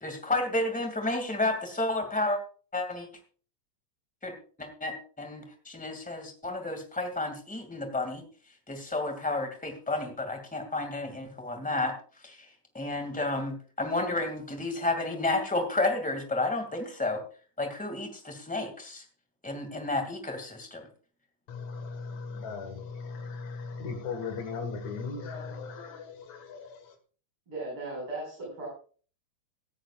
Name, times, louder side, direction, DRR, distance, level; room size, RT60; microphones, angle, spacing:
voice 1, 0.0-2.4 2.7-3.1 4.2-8.2 8.7-12.0 12.2-12.5 12.7-17.2 17.6-19.0 19.4-20.8, left 2 dB, 5° left, 5 dB, 1.9 m, -31 dB
voice 2, 21.5-27.0, left 4 dB, 70° left, 6 dB, 3.2 m, -38 dB
voice 3, 27.5-28.7, right 2 dB, 45° right, -4 dB, 6.5 m, -37 dB
17.5 x 14.0 x 2.5 m, 0.41 s
omnidirectional pair, 3.3 m